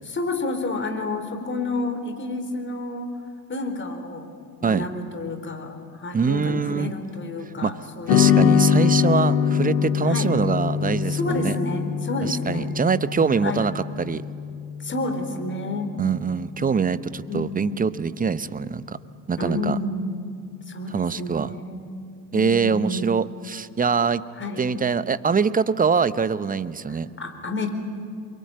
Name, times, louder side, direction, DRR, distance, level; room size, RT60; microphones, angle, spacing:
voice 1, 0.0-3.1 3.5-4.3 4.6-8.5 10.1-10.3 11.1-12.7 13.4-13.7 14.8-15.9 17.3-17.7 19.4-20.2 20.7-21.9 22.3-23.1 24.3-24.7 26.9-27.7, left 2 dB, 25° left, 6 dB, 4.3 m, -30 dB
voice 2, 6.1-6.9 7.6-7.8 8.1-11.6 12.2-14.2 16.0-19.0 19.3-19.8 20.9-21.5 22.3-24.2 24.6-27.1, right 5 dB, 15° right, 16 dB, 0.9 m, -24 dB
sound 1, 8.1-16.6, left 8 dB, 60° left, 1.9 m, -23 dB
28.0 x 23.0 x 8.9 m, 2.3 s
figure-of-eight pair, 65°, 50 cm